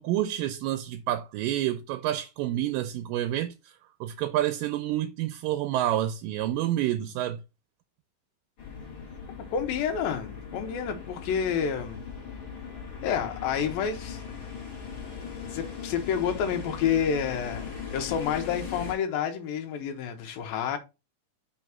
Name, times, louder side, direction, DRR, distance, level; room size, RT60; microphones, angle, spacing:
voice 1, 0.0-3.7 4.0-7.4, right 13 dB, 80° right, 2.2 m, -28 dB
sound 1, 8.6-18.9, left 6 dB, 40° left, 2.5 m, -39 dB
voice 2, 9.5-12.1 13.0-14.2 15.5-17.6 17.9-20.8, left 7 dB, 80° left, 2.8 m, -29 dB
6.3 x 3.5 x 5.8 m
omnidirectional pair, 4.2 m